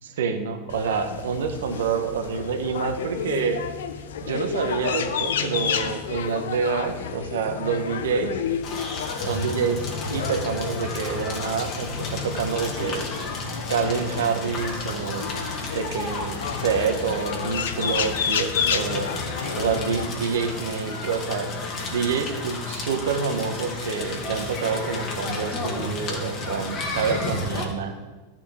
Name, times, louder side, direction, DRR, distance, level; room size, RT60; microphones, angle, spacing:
voice 1, 0.0-3.6 4.2-8.4 9.3-13.1 13.7-15.4 15.7-19.1 19.5-21.5 21.9-27.9, right 5 dB, 70° right, 7 dB, 1.2 m, -27 dB
sound 1, 0.7-20.1, left 7 dB, 75° left, 0.7 m, -31 dB
Crackle, 8.6-27.6, left 3 dB, 40° left, 2.4 m, -32 dB
13.5 x 6.0 x 4.5 m, 1.2 s
hypercardioid pair, 95°, 0 cm